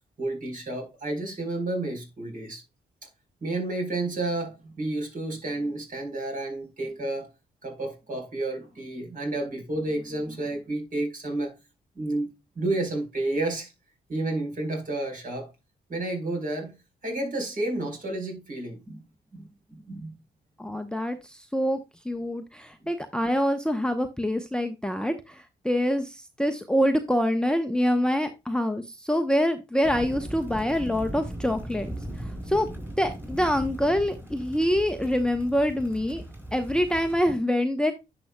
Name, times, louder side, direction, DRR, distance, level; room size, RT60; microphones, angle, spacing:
voice 1, 0.2-2.6 3.4-7.3 7.6-11.5 12.0-12.3 12.6-13.7 14.1-15.5 15.9-16.8 17.0-19.0 19.3-19.5 19.9-20.1, right 2 dB, 45° right, 4.1 m, -31 dB
voice 2, 20.6-21.8 22.0-32.7 33.0-36.2 36.5-37.9, equal, 5° left, 0.8 m, -26 dB
sound 1, 29.8-37.2, right 1 dB, 10° right, 3.9 m, -38 dB
10.5 x 5.9 x 2.2 m
hypercardioid pair, 45°, 20 cm